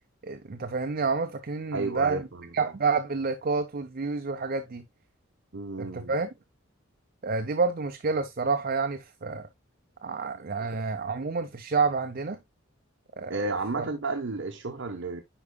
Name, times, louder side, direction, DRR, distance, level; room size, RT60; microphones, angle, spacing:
voice 1, 0.2-2.2 2.5-4.8 5.8-6.3 7.2-9.5 10.0-12.4 13.2-13.4 13.7-13.9, right 4 dB, 45° right, 0.5 m, -29 dB
voice 2, 1.7-2.5 5.5-6.1 10.3-10.7 13.3-15.2, right 3 dB, 65° right, 0.9 m, -32 dB
10.0 x 4.7 x 2.2 m
head